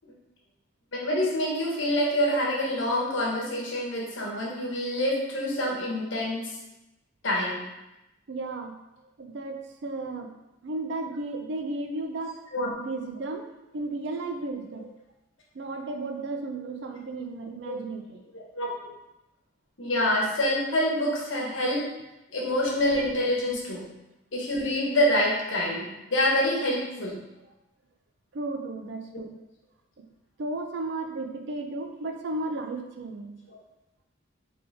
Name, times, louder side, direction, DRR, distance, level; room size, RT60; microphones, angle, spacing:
voice 1, 0.9-6.5 7.2-7.6 12.5-12.7 17.7-17.8 18.3-18.7 19.8-21.9 22.3-23.9 24.3-27.2 33.5-33.6, left 1 dB, 70° left, -3 dB, 1.1 m, -26 dB
voice 2, 8.3-8.8 9.2-10.3 10.6-12.4 12.8-13.4 13.7-14.9 15.5-18.2 28.3-29.4 30.0-30.1 30.4-33.4, right 2 dB, 60° right, 4 dB, 0.5 m, -34 dB
3.7 x 3.4 x 3.4 m, 0.94 s
head